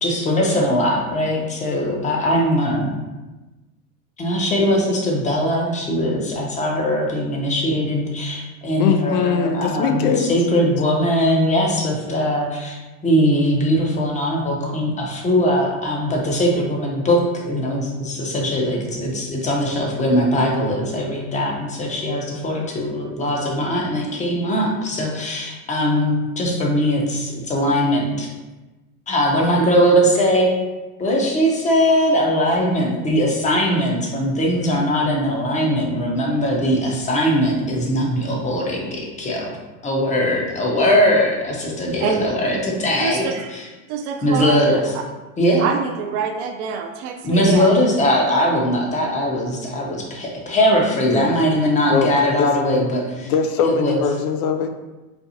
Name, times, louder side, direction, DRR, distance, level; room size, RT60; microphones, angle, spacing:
voice 1, 0.0-2.9 4.2-12.8 13.0-28.3 29.1-30.5 31.0-39.6 39.8-43.2 43.5-43.6 44.2-44.8 45.4-45.7 47.2-53.3 53.6-54.0, equal, 15° left, -1 dB, 0.6 m, -20 dB
voice 2, 8.8-10.4 51.1-51.3 51.9-52.1 52.4-52.5 53.2-54.7, left 6 dB, 80° left, 6 dB, 0.5 m, -21 dB
voice 3, 42.0-42.3 43.0-43.6 43.9-45.1 45.6-47.7, right 5 dB, 50° right, 4 dB, 0.5 m, -26 dB
4.2 x 2.3 x 2.7 m, 1.1 s
hypercardioid pair, 110°, 43 cm